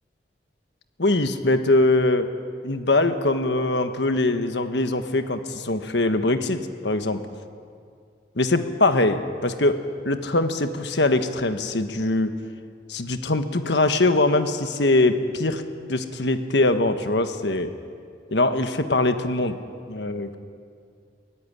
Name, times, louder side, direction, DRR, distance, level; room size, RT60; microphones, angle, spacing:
voice 1, 1.0-2.3 2.6-7.2 8.4-9.8 10.0-12.3 12.9-15.6 15.9-17.7 18.3-19.6 19.9-20.3, left 2 dB, 75° left, 8 dB, 1.4 m, -22 dB
23.0 x 16.0 x 9.9 m, 2.3 s
head